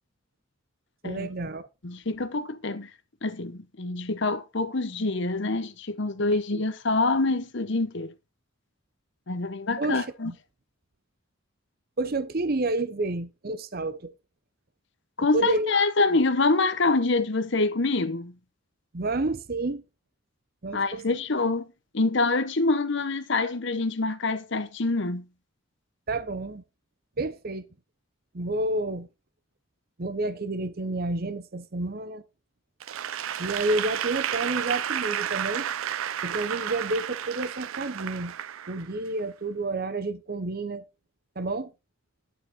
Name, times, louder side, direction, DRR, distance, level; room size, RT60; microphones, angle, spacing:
voice 1, 1.0-1.7 6.5-6.6 9.8-10.3 12.0-14.1 15.3-15.7 18.9-19.8 20.6-21.2 26.1-26.6 27.2-27.7 28.3-29.1 30.0-32.2 33.4-35.7 36.2-38.3 38.7-40.8 41.4-41.7, right 2 dB, 45° right, 0.8 m, -30 dB
voice 2, 1.8-2.9 3.2-8.1 9.3-10.3 15.2-18.3 20.7-21.6 21.9-25.3, left 3 dB, 60° left, 1.0 m, -26 dB
Applause / Crowd, 32.8-39.2, right 10 dB, 80° right, 0.5 m, -32 dB
10.5 x 7.3 x 4.1 m
head